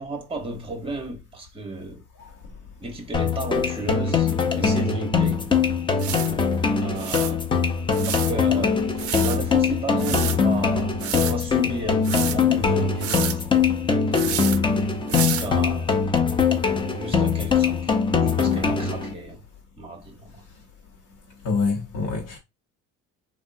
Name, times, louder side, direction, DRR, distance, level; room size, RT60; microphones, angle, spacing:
voice 1, 0.0-2.0 2.8-5.5 6.8-7.4 8.0-8.9 9.2-13.4 15.0-15.9 16.9-19.4 19.8-20.4, right 2 dB, 15° right, 1.0 m, -33 dB
sound 1, 3.1-19.1, left 5 dB, 15° left, 0.4 m, -22 dB
sound 2, 5.2-5.3 6.0-6.3 7.0-7.3 7.9-8.3 9.0-9.4 10.0-10.4 11.0-11.3 12.0-12.4 13.0-13.4 14.1-14.6 15.1-15.5 16.2-16.3, right 11 dB, 45° right, 0.4 m, -29 dB
voice 2, 21.4-22.4, left 4 dB, 65° left, 0.8 m, -25 dB
3.5 x 2.1 x 2.5 m
cardioid pair, 130°, 34 cm